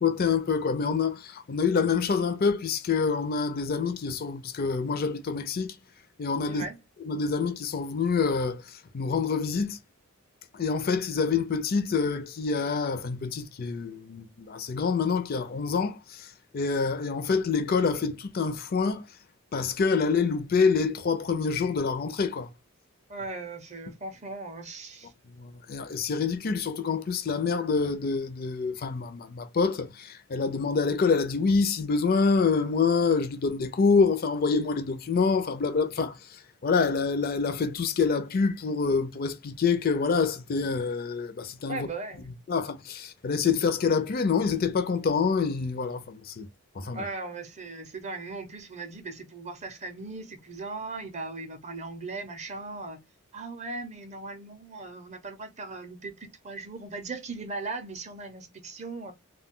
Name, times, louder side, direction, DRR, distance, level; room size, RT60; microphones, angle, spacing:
voice 1, 0.0-5.8 6.2-6.6 7.0-9.8 10.5-19.0 19.5-22.5 25.4-41.9 42.5-46.5 46.8-47.0, left 5 dB, 45° left, 0.4 m, -26 dB
voice 2, 6.5-6.8 23.1-25.1 41.7-42.3 46.9-53.0 53.3-59.1, right 3 dB, 30° right, 0.6 m, -38 dB
2.2 x 2.2 x 3.6 m
head